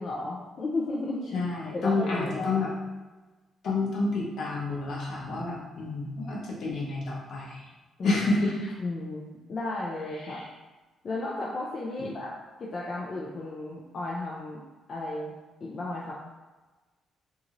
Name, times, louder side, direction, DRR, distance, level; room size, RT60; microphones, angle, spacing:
voice 1, 0.0-1.4 1.7-2.6 8.0-8.2 8.8-10.4 11.0-12.3 12.6-14.6 14.9-15.3 15.6-16.1, left 2 dB, 50° left, -4 dB, 0.4 m, -34 dB
voice 2, 1.3-2.7 3.6-7.6 8.0-8.7 10.3-10.4 12.0-12.1, left 3 dB, 70° left, -4 dB, 0.8 m, -29 dB
2.7 x 2.5 x 2.9 m, 1.2 s
cardioid pair, 90°, 0 cm